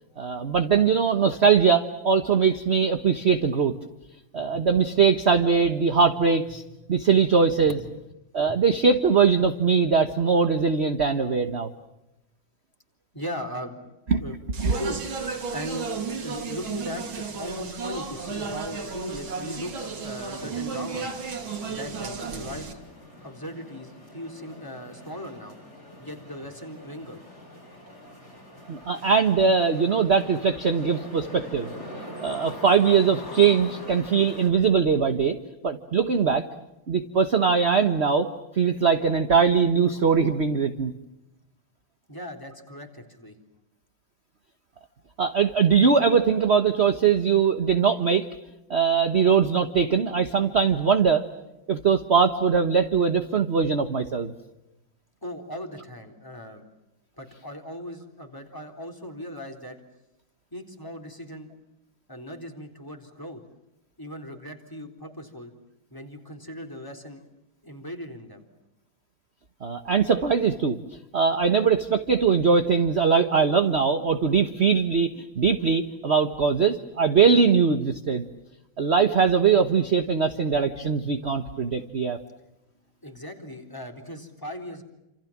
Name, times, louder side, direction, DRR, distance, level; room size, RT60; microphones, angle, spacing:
voice 1, 0.2-3.8 4.3-6.6 6.9-7.8 8.3-11.7 14.1-14.2 14.6-14.7 28.7-31.7 32.2-35.4 35.6-36.4 36.9-38.3 38.5-40.9 45.2-48.3 48.7-51.2 51.7-54.3 69.6-70.8 71.1-78.3 78.8-82.2, right 6 dB, 35° right, 8 dB, 1.4 m, -21 dB
voice 2, 4.4-4.7 7.7-7.8 13.1-14.4 14.7-15.0 15.5-15.9 16.2-21.1 21.7-22.8 23.2-25.6 26.0-27.2 42.1-43.4 55.2-56.6 57.2-59.8 60.5-61.5 62.1-63.4 64.0-65.5 65.9-67.2 67.6-68.4 83.0-84.8, equal, 10° left, 5 dB, 3.9 m, -38 dB
Speech, 14.5-22.7, right 5 dB, 80° right, 3.6 m, -33 dB
sound 1, 18.1-34.5, left 1 dB, 35° left, 7.7 m, -44 dB
29.0 x 27.5 x 7.4 m, 0.94 s
omnidirectional pair, 2.2 m